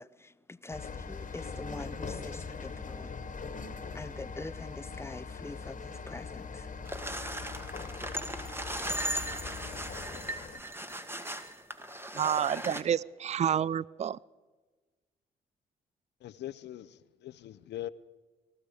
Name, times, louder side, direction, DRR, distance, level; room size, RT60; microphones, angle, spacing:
voice 1, 0.0-3.2 3.9-6.7, left 2 dB, 15° left, 0.6 m, -44 dB
sound 1, 0.7-10.6, left 5 dB, 40° left, 1.6 m, -41 dB
sound 2, 6.9-12.8, equal, 10° right, 1.5 m, -37 dB
voice 2, 12.1-14.2, right 9 dB, 35° right, 0.4 m, -29 dB
voice 3, 16.2-17.9, left 13 dB, 65° left, 0.6 m, -41 dB
19.5 x 14.0 x 4.9 m
hypercardioid pair, 50°, 19 cm